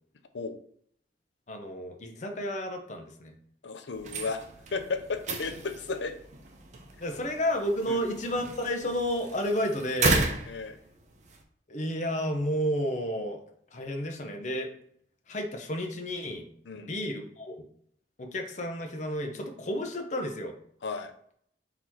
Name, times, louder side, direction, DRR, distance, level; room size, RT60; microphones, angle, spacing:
voice 1, 1.5-3.3 7.0-10.3 11.7-13.4 13.7-14.7 15.3-16.5 16.7-17.6 18.2-20.6, equal, 45° left, 4 dB, 0.7 m, -31 dB
voice 2, 3.6-4.4 4.7-6.2 7.9-8.0 10.5-10.8 16.7-16.9 20.8-21.1, left 4 dB, 90° left, 8 dB, 0.6 m, -34 dB
sound 1, 3.9-11.4, right 3 dB, 40° right, 0.6 m, -34 dB
3.9 x 2.8 x 4.5 m, 0.66 s
head